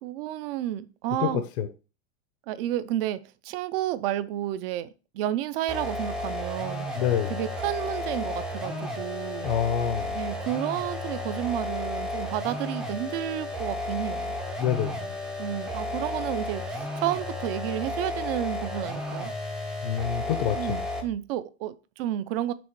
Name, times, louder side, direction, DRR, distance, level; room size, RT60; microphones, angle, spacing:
voice 1, 0.0-1.4 2.5-6.9 7.3-9.5 10.1-14.3 15.4-19.3 20.6-22.5, right 12 dB, 60° right, 0.6 m, -31 dB
voice 2, 1.2-1.7 6.9-7.3 9.4-10.2 14.6-15.2 19.8-20.8, left 9 dB, 75° left, 0.7 m, -27 dB
sound 1, 5.7-21.2, left 1 dB, ahead, 0.4 m, -33 dB
6.1 x 3.5 x 4.6 m
supercardioid pair, 170°, 33 cm